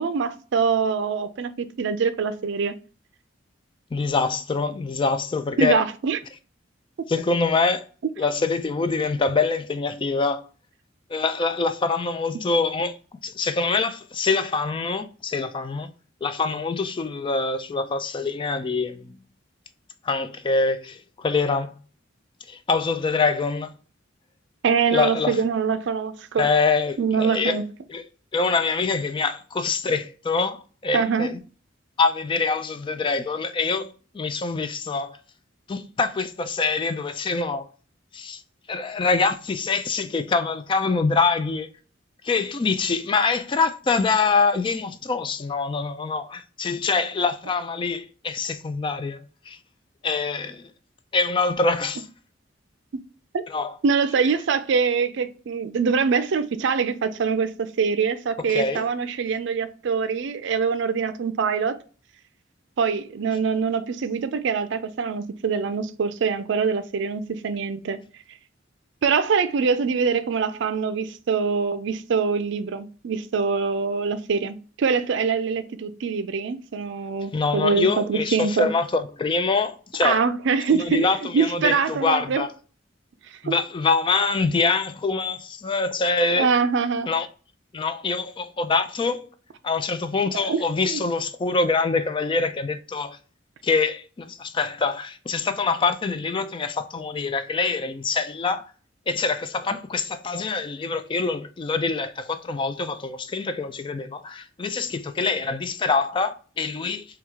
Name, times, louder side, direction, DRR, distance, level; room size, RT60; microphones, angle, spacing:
voice 1, 0.0-2.7 5.6-6.2 24.6-26.5 27.0-27.6 30.9-31.4 53.3-53.4 53.8-61.8 62.8-68.0 69.0-78.7 80.0-82.5 83.5-83.6 86.4-87.1 90.3-91.0, right 5 dB, 70° right, 0.4 m, -24 dB
voice 2, 3.9-5.8 7.1-7.8 8.2-10.5 11.1-13.0 13.2-15.9 16.2-19.2 20.0-21.7 22.5-23.7 24.9-25.4 26.4-27.6 27.9-28.0 28.3-31.4 32.0-35.2 35.7-37.7 38.1-38.4 38.7-41.7 42.2-49.6 50.0-50.6 51.1-52.0 53.5-53.7 58.4-58.9 77.3-80.2 80.7-82.5 83.4-86.5 87.1-87.3 87.7-89.3 89.6-93.2 93.6-98.7 99.1-107.1, left 4 dB, 25° left, 0.3 m, -25 dB
3.5 x 2.3 x 4.5 m
head